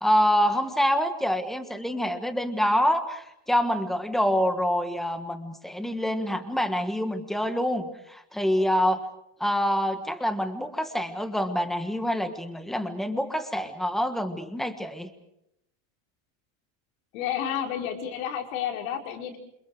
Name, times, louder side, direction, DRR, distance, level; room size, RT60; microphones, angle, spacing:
voice 1, 0.0-9.0 9.4-15.1, equal, ahead, 8 dB, 1.5 m, -26 dB
voice 2, 17.1-19.4, left 9 dB, 80° left, 3 dB, 5.2 m, -31 dB
28.0 x 27.5 x 4.9 m, 0.79 s
cardioid pair, 175°, 40 cm